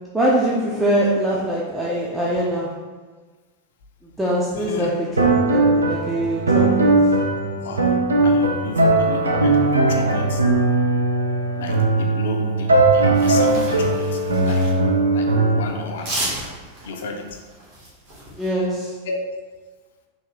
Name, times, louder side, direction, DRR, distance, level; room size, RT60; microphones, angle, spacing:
voice 1, 0.1-2.8 4.2-7.1 15.3-15.7 18.4-18.9, right 1 dB, 10° right, -5 dB, 0.4 m, -23 dB
voice 2, 4.6-4.9 7.6-7.9 8.2-10.4 11.5-14.7 15.1-16.1 16.8-17.4 19.1-19.2, left 3 dB, 60° left, 3 dB, 0.5 m, -32 dB
sound 1, 5.2-15.6, right 2 dB, 75° right, 0.4 m, -18 dB
sound 2, 13.1-14.8 15.9-18.5, right 1 dB, 50° right, 1.4 m, -33 dB
3.5 x 2.5 x 3.3 m, 1.4 s
figure-of-eight pair, 90°, 0 cm